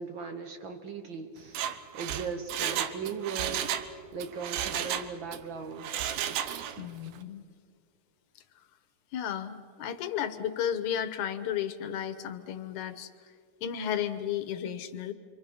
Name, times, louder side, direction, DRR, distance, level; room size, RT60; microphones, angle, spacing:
voice 1, 0.0-1.6 1.9-5.9, right 5 dB, 65° right, 6 dB, 1.2 m, -38 dB
Mechanisms, 1.4-3.9 4.2-5.4 5.8-6.9 7.2-7.3, right 10 dB, 80° right, 2.4 m, -33 dB
voice 2, 6.8-7.4 9.1-13.1 13.6-15.1, left 9 dB, 70° left, 11 dB, 2.3 m, -33 dB
29.0 x 24.5 x 5.5 m, 2.2 s
omnidirectional pair, 3.6 m